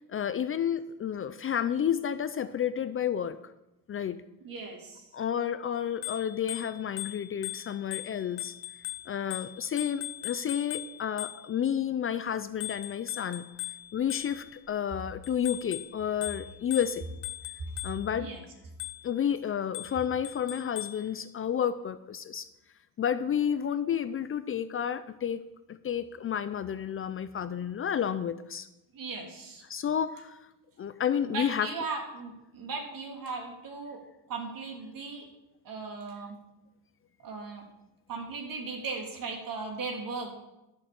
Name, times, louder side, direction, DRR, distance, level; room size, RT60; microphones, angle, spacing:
voice 1, 0.1-3.4 3.9-4.2 5.1-8.5 9.1-13.4 13.9-17.0 17.8-18.3 19.0-22.5 23.0-25.4 25.7-28.7 29.7-30.4 30.8-31.7, left 8 dB, 35° left, 13 dB, 0.5 m, -31 dB
voice 2, 4.4-5.1 18.2-18.4 28.9-29.6 31.2-34.0 34.3-35.3 35.6-36.4 37.2-37.6 38.1-40.3, right 4 dB, 55° right, 1 dB, 3.2 m, -37 dB
Bicycle bell, 5.9-11.7 12.6-14.7 15.2-18.2 18.8-19.2 19.7-21.1, left 15 dB, 85° left, 1.0 m, -40 dB
12.5 x 6.7 x 7.0 m, 0.94 s
cardioid pair, 120°, 39 cm